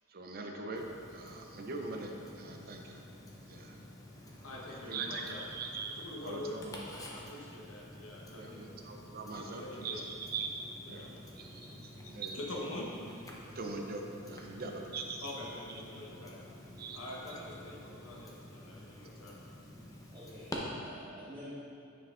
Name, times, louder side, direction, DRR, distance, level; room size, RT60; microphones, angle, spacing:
voice 1, 0.1-3.0 3.5-3.7 4.7-6.0 6.2-6.8 8.3-10.5 10.9-11.1 11.4-11.7 12.1-12.4 13.5-15.3 16.1-16.2 16.8-17.0, right 3 dB, 45° right, 2 dB, 0.6 m, -41 dB
Tick-tock, 0.8-20.6, left 1 dB, 15° left, 0.7 m, -51 dB
sound 1, 1.6-20.3, equal, 75° right, 1.6 m, -59 dB
voice 2, 4.4-5.5 6.0-8.7 9.3-10.0 10.8-11.3 11.6-12.9 15.2-16.5 16.9-20.1, left 1 dB, 80° left, -4 dB, 1.0 m, -45 dB
voice 3, 20.1-21.5, equal, 25° right, -13 dB, 1.4 m, -49 dB
9.4 x 5.7 x 2.5 m, 2.6 s
head